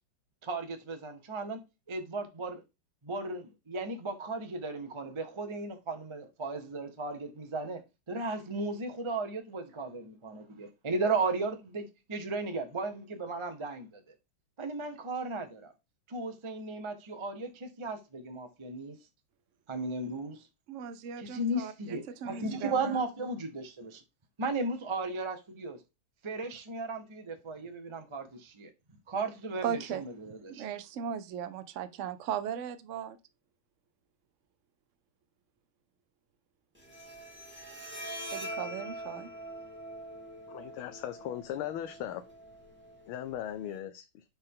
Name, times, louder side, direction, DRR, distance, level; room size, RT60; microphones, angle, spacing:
voice 1, 0.4-1.6 1.9-2.6 3.0-7.8 8.1-14.0 14.6-15.7 16.1-19.0 19.7-20.5 21.2-24.0 24.4-25.8 26.2-28.7 29.1-30.7, right 3 dB, 40° right, 0.4 m, -35 dB
voice 2, 20.7-23.0 29.6-30.1 30.5-33.2 38.3-39.3, right 8 dB, 85° right, 0.6 m, -37 dB
Bowed string instrument, 36.8-43.8, right 1 dB, 5° right, 2.0 m, -44 dB
voice 3, 40.5-42.2 43.1-44.2, left 11 dB, 85° left, 1.5 m, -38 dB
6.5 x 4.5 x 3.7 m
omnidirectional pair, 2.2 m